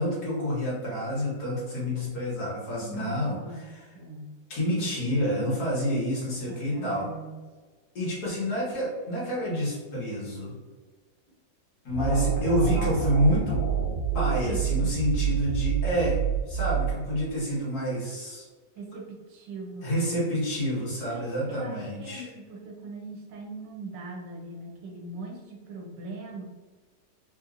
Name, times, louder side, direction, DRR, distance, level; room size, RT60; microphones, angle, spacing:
voice 1, 0.0-3.8 4.5-7.1 7.9-10.5 11.8-13.6 14.1-16.2 16.5-18.4 19.8-22.3, equal, 55° left, -7 dB, 2.1 m, -28 dB
voice 2, 2.8-3.7 3.9-4.4 6.5-7.4 11.3-11.4 14.4-15.1 18.8-20.3 21.0-26.4, right 2 dB, 75° right, 2 dB, 1.3 m, -41 dB
sound 1, 11.9-17.4, right 8 dB, 80° left, 1.8 m, -27 dB
3.9 x 2.8 x 2.5 m, 1.4 s
omnidirectional pair, 2.0 m